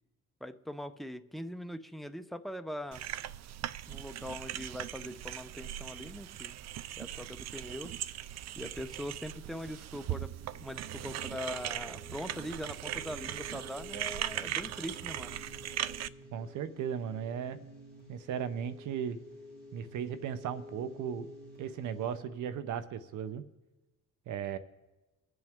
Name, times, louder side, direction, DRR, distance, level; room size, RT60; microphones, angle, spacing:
voice 1, 0.4-3.0 3.9-6.6 7.0-7.9 8.5-10.3 10.6-15.4, equal, ahead, 8 dB, 0.7 m, -41 dB
sound 1, 2.9-16.1, right 12 dB, 60° right, 0.5 m, -39 dB
sound 2, 9.9-22.2, left 1 dB, 35° right, 4.9 m, -51 dB
voice 2, 16.3-17.6 18.1-19.2 19.7-21.3 21.6-23.4 24.3-24.6, right 8 dB, 80° right, 13 dB, 0.9 m, -36 dB
23.5 x 7.8 x 3.6 m, 1.1 s
cardioid pair, 90°, 30 cm